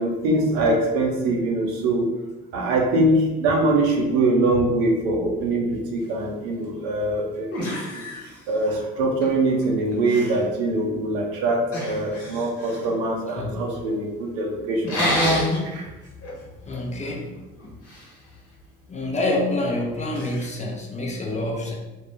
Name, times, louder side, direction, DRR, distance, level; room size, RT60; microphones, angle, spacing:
voice 1, 0.0-2.1 2.5-7.5 7.9-8.0 8.5-15.9, right 2 dB, 75° right, 0 dB, 0.6 m, -23 dB
sound 1, 6.8-6.9 7.5-8.8 9.2-9.7 9.9-10.5 11.7-12.9 14.8-15.7 16.1-16.4 16.7-18.1 20.1-20.5, left 1 dB, 45° left, 1.0 m, -28 dB
voice 2, 16.7-17.3 18.9-21.7, left 1 dB, 20° left, 0 dB, 0.6 m, -27 dB
2.3 x 2.0 x 3.2 m, 1.1 s
hypercardioid pair, 50°, 32 cm